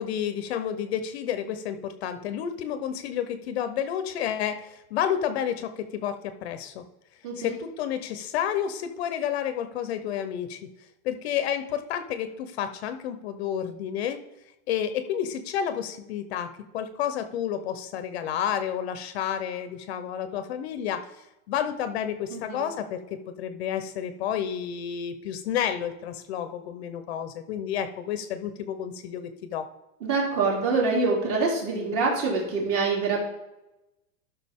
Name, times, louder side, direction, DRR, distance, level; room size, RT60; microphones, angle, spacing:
voice 1, 0.0-6.8 7.4-10.6 11.0-14.2 14.7-21.1 21.5-23.0 23.4-29.7, left 9 dB, 45° left, 10 dB, 0.7 m, -30 dB
voice 2, 7.2-7.5 22.3-22.6 30.0-33.2, right 4 dB, 40° right, -1 dB, 2.9 m, -25 dB
13.0 x 5.8 x 3.6 m, 0.95 s
supercardioid pair, 170°, 43 cm